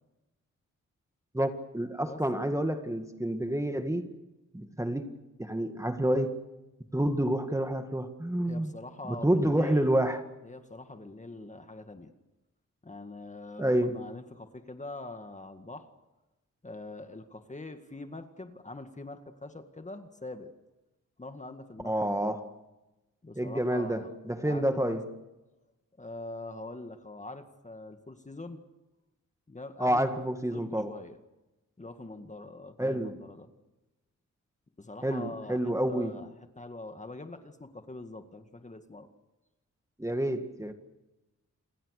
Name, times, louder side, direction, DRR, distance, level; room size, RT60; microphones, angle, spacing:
voice 1, 1.3-4.1 4.5-5.1 5.4-6.4 6.9-8.7 9.1-10.2 13.6-14.0 21.8-22.4 23.4-25.1 29.8-31.0 32.8-33.2 35.0-36.2 40.0-40.7, right 1 dB, 10° right, 2.0 m, -28 dB
voice 2, 8.5-9.9 10.4-12.1 12.8-15.9 16.6-20.5 21.2-22.3 23.2-24.2 24.4-25.0 26.0-28.6 29.5-30.1 30.4-31.2 31.8-33.5 34.8-39.1, left 2 dB, 25° left, 2.0 m, -44 dB
28.5 x 22.5 x 6.7 m
wide cardioid pair, 90°, 30 cm